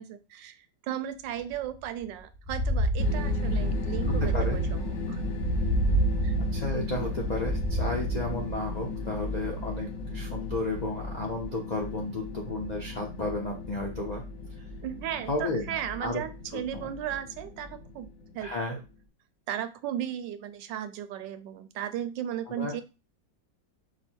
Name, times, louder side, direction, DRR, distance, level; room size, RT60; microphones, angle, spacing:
voice 1, 0.0-5.2 6.2-6.3 14.8-18.8 19.5-22.8, right 10 dB, 80° right, 10 dB, 1.3 m, -36 dB
sound 1, 1.5-1.6 1.8-1.9 2.3-8.5, right 1 dB, 15° left, 0.7 m, -29 dB
sound 2, 3.0-18.9, left 2 dB, 55° left, 1.1 m, -35 dB
voice 2, 6.4-14.2 15.3-15.7 16.0-16.2 16.5-16.9 18.4-18.8 22.5-22.8, left 2 dB, 75° left, -1 dB, 0.4 m, -33 dB
5.1 x 2.1 x 4.3 m, 0.29 s
omnidirectional pair, 1.9 m